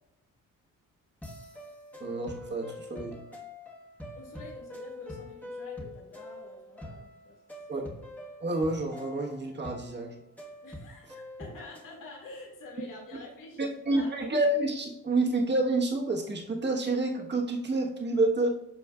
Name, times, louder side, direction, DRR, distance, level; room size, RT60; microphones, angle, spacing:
sound 1, 1.2-11.9, left 1 dB, 5° left, 1.3 m, -45 dB
voice 1, 2.0-3.2 7.7-7.8 8.4-10.1 13.6-18.5, right 2 dB, 35° right, 0 dB, 1.3 m, -28 dB
voice 2, 4.1-7.9 10.6-14.1, left 2 dB, 80° left, -2 dB, 2.3 m, -47 dB
12.0 x 4.4 x 2.4 m, 0.93 s
cardioid pair, 120°, 32 cm